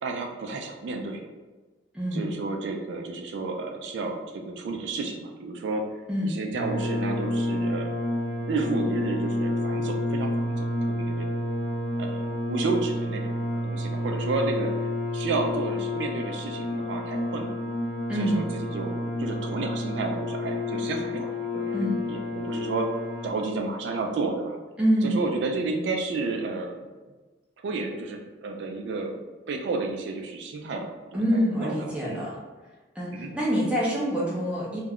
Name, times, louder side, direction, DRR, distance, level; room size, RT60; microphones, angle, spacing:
voice 1, 0.0-1.2 2.1-5.8 6.2-8.0 8.5-11.3 12.0-17.6 18.2-22.9 23.2-24.6 25.0-26.8 27.6-29.2 29.5-30.9 31.3-32.2 33.1-33.3, right 3 dB, 80° right, 3 dB, 0.3 m, -31 dB
voice 2, 1.9-2.3 6.1-6.4 18.1-18.4 21.7-22.0 24.8-25.2 31.1-32.3 33.0-34.8, equal, 5° right, -6 dB, 0.6 m, -26 dB
sound 1, 6.5-23.3, left 1 dB, 50° left, 0.4 m, -29 dB
2.3 x 2.1 x 3.5 m, 1.3 s
head